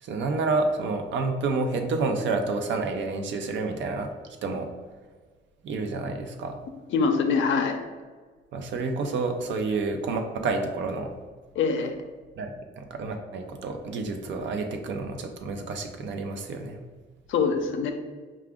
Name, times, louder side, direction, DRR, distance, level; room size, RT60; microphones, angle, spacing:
voice 1, 0.0-4.1 4.4-4.7 5.6-6.6 8.5-11.1 12.4-16.8, right 3 dB, 70° right, 4 dB, 0.6 m, -29 dB
voice 2, 6.9-7.8 11.5-11.9 17.3-17.9, left 5 dB, 75° left, 5 dB, 0.6 m, -24 dB
4.8 x 2.4 x 3.6 m, 1.4 s
cardioid pair, 90°, 20 cm